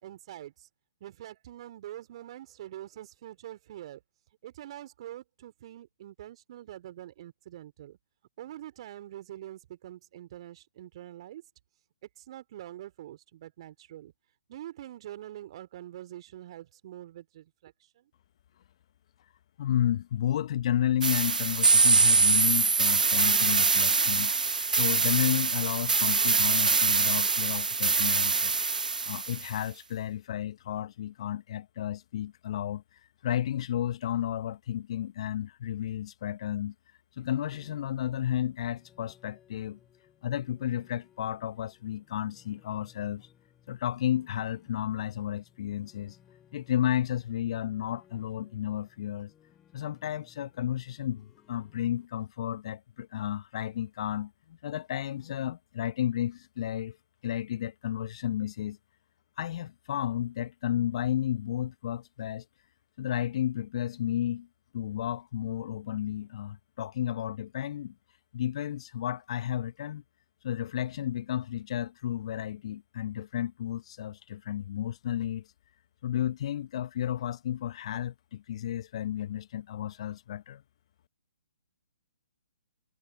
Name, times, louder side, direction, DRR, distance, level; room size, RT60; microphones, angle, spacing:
voice 1, 0.0-0.7 1.0-4.0 4.4-8.0 8.4-11.4 12.0-14.1 14.5-18.1, right 13 dB, 45° right, 2.8 m, -45 dB
voice 2, 19.6-24.3 24.8-28.5 29.0-32.8 33.2-36.7 37.2-39.8 40.2-43.3 43.7-46.2 46.5-49.3 49.7-57.0 57.2-58.8 59.4-62.4 63.0-64.5 64.7-67.9 68.3-70.0 70.4-75.4 76.0-80.6, left 11 dB, 45° left, 0.9 m, -32 dB
sound 1, 21.0-29.5, right 4 dB, 80° right, 0.4 m, -24 dB
sound 2, 37.3-52.1, left 10 dB, 15° left, 5.5 m, -62 dB
figure-of-eight pair, 130°, 4 cm